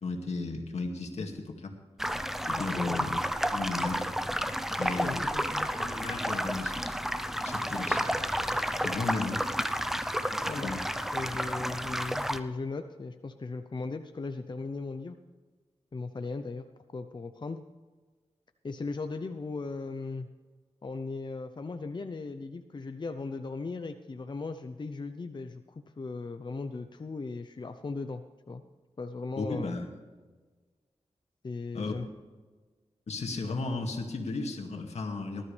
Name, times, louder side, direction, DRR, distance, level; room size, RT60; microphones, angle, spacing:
voice 1, 0.0-1.8 2.5-3.2 3.5-4.1 4.8-5.2 5.8-6.9 7.4-8.1 8.8-9.4 10.6-10.8 29.4-29.9 31.7-32.0 33.1-35.4, left 3 dB, 75° left, 2 dB, 2.2 m, -34 dB
sound 1, 2.0-12.4, equal, 5° right, 0.8 m, -31 dB
voice 2, 2.8-3.1 4.8-5.7 10.5-15.2 15.9-16.6 16.9-17.6 18.6-20.3 20.8-28.2 28.5-28.6 29.0-29.8 31.4-32.1, left 3 dB, 45° left, 8 dB, 0.7 m, -37 dB
19.5 x 12.5 x 3.4 m, 1.4 s
wide cardioid pair, 75°, 11 cm